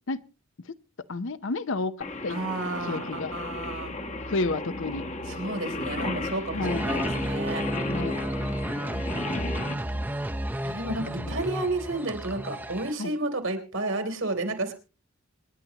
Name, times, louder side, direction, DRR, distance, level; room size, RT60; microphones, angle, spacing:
voice 1, 1.1-2.4 2.9-3.3 4.3-5.1 6.5-6.8 7.9-8.2 9.4-10.0 11.0-11.4 13.0-13.1, left 3 dB, 70° left, 14 dB, 0.7 m, -31 dB
Singing, 2.0-9.7, left 2 dB, 35° left, 1.0 m, -34 dB
voice 2, 2.3-3.9 5.3-7.7 10.6-14.7, right 2 dB, 80° right, 6 dB, 3.2 m, -31 dB
sound 1, 3.2-9.8, right 1 dB, 85° left, 2.5 m, -45 dB
sound 2, 6.6-12.9, equal, 10° right, 0.7 m, -32 dB
26.5 x 10.5 x 2.9 m, 0.33 s
head